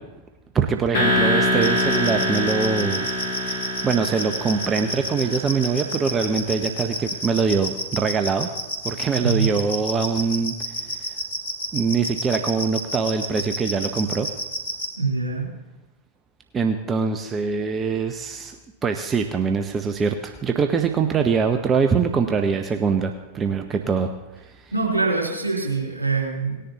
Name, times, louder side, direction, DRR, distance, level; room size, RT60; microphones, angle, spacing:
voice 1, 0.5-8.5 8.8-10.5 11.7-14.3 16.5-18.6 18.8-24.1 24.4-24.5, right 5 dB, 20° right, 6 dB, 0.7 m, -23 dB
sound 1, 0.9-5.8, equal, 60° left, 2.4 m, -24 dB
sound 2, 1.6-14.9, left 1 dB, 80° left, 2.9 m, -29 dB
voice 2, 15.0-15.5 24.7-26.6, right 4 dB, 80° right, -3 dB, 3.2 m, -24 dB
18.5 x 10.0 x 2.9 m, 1.1 s
figure-of-eight pair, 90°, 0 cm